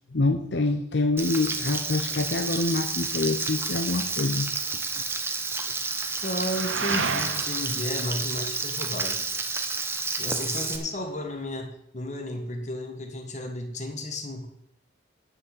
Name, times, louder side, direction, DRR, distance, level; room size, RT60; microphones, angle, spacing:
voice 1, 0.1-5.0, left 2 dB, 65° left, 6 dB, 0.7 m, -26 dB
Frying (food), 1.2-10.8, right 4 dB, 10° right, 0.9 m, -30 dB
sound 1, 1.9-11.7, right 5 dB, 85° right, 0.9 m, -37 dB
voice 2, 6.2-9.2 10.2-14.5, left 1 dB, 35° left, 4 dB, 1.6 m, -33 dB
9.4 x 6.1 x 8.2 m, 0.75 s
head